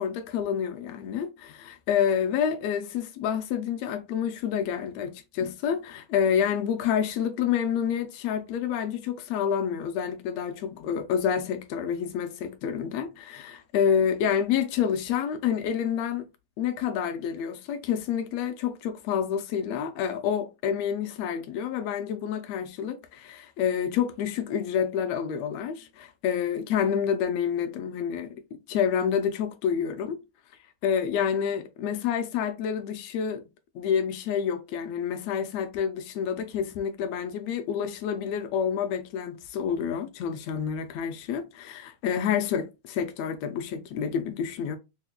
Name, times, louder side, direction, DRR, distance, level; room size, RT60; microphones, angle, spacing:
voice 1, 0.0-16.3 16.6-28.4 28.7-30.2 30.8-33.4 33.7-44.8, left 8 dB, 80° left, 1.6 m, -28 dB
6.2 x 2.2 x 2.2 m
omnidirectional pair, 3.4 m